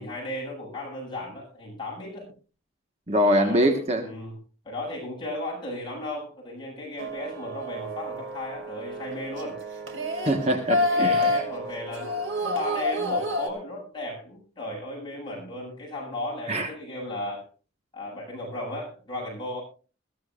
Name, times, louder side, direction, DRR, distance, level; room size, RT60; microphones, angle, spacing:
voice 1, 0.0-2.3 3.2-4.4 4.6-9.6 10.9-17.5 17.9-19.6, left 1 dB, 25° left, -3 dB, 7.9 m, -35 dB
voice 2, 3.1-4.1 10.2-11.2 16.5-16.7, equal, 35° right, 4 dB, 1.4 m, -23 dB
sound 1, 7.0-13.5, left 1 dB, 80° right, 2.4 m, -28 dB
21.5 x 14.5 x 2.5 m, 0.36 s
head